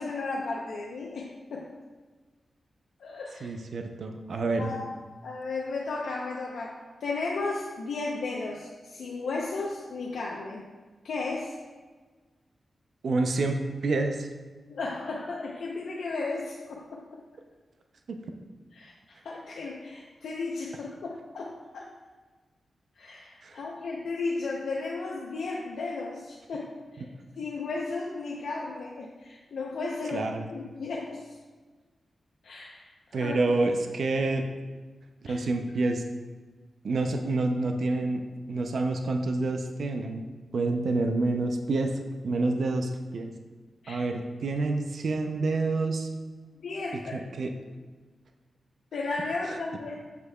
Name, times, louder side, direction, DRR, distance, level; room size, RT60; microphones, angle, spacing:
voice 1, 0.0-1.6 3.0-3.5 4.6-4.9 5.2-10.7 11.0-11.6 14.7-17.0 18.7-21.9 23.0-27.1 27.4-31.4 32.4-33.4 35.3-35.5 43.8-44.0 46.6-47.2 48.9-49.9, left 3 dB, 90° left, -3 dB, 0.6 m, -34 dB
voice 2, 3.4-4.7 13.0-13.6 13.8-14.3 18.1-18.2 23.4-23.6 30.1-30.5 33.1-34.4 35.2-36.0 36.8-38.2 38.5-40.2 40.5-41.9 42.2-43.3 43.9-46.1 47.1-47.5 49.5-49.6, right 3 dB, 65° right, 5 dB, 0.5 m, -28 dB
7.2 x 6.6 x 2.3 m, 1.4 s
wide cardioid pair, 115°, 0 cm